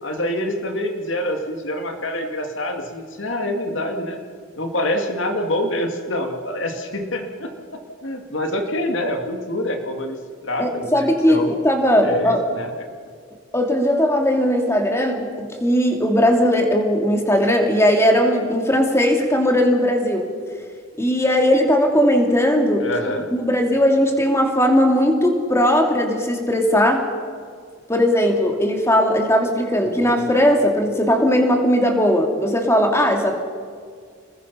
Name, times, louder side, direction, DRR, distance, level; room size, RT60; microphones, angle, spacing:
voice 1, 0.0-4.2 4.6-7.5 8.0-10.2 10.4-11.5 12.0-12.7 22.8-23.3 29.8-30.1, left 1 dB, 65° left, 4 dB, 2.6 m, -26 dB
voice 2, 10.6-12.4 13.5-20.2 21.0-22.9 23.3-27.0 27.9-33.4, equal, 15° left, 3 dB, 2.6 m, -18 dB
27.0 x 21.0 x 5.7 m, 2.1 s
head